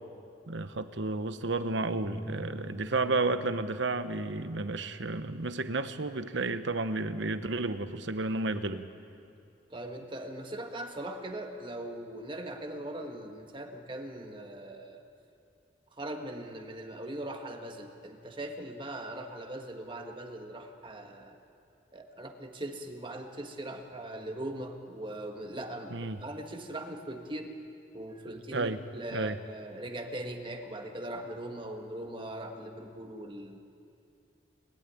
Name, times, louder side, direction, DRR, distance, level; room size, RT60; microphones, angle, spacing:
voice 1, 0.5-8.9 25.9-26.2 28.5-28.8 29.1-29.4, right 3 dB, 70° right, 11 dB, 1.0 m, -32 dB
sound 1, 2.0-8.3, right 1 dB, ahead, 0.9 m, -49 dB
voice 2, 9.7-15.0 15.9-21.4 21.9-27.5 27.9-33.6, right 1 dB, 25° right, 4 dB, 1.6 m, -40 dB
28.5 x 12.5 x 10.0 m, 2.5 s
head